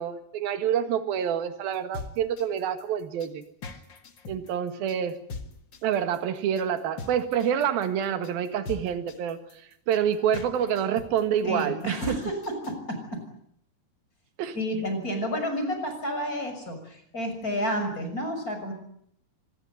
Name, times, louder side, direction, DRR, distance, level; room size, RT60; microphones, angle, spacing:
voice 1, 0.0-3.4 4.3-5.2 5.8-9.4 9.9-12.2 14.4-14.6, right 9 dB, 65° right, 9 dB, 3.6 m, -27 dB
sound 1, 1.7-12.7, left 4 dB, 40° left, 1.7 m, -41 dB
voice 2, 11.4-12.3 12.7-13.2 14.5-18.7, equal, 20° left, 6 dB, 6.5 m, -30 dB
25.5 x 19.5 x 9.4 m, 0.70 s
omnidirectional pair, 4.7 m